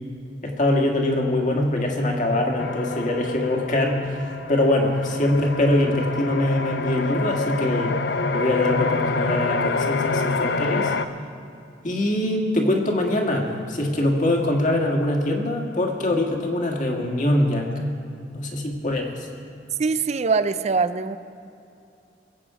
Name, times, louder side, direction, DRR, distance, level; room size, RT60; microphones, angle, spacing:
voice 1, 0.4-8.0 8.3-10.9 11.8-17.9 18.3-19.3, left 1 dB, 45° left, 1 dB, 1.8 m, -23 dB
sound 1, 2.6-11.1, left 4 dB, 65° left, 0.5 m, -27 dB
voice 2, 19.8-21.2, right 4 dB, 40° right, 12 dB, 0.5 m, -22 dB
21.5 x 8.3 x 4.9 m, 2.6 s
head